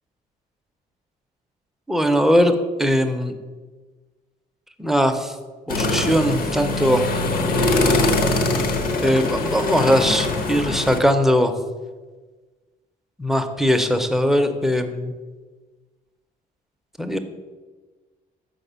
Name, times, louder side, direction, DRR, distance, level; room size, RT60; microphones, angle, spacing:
voice 1, 1.9-3.3 4.8-5.3 5.7-7.1 9.0-11.5 13.2-15.1 17.0-17.2, equal, ahead, 6 dB, 0.5 m, -20 dB
sound 1, 5.7-11.0, left 2 dB, 65° left, 0.9 m, -22 dB
5.8 x 5.0 x 6.7 m, 1.3 s
cardioid pair, 165°, 16 cm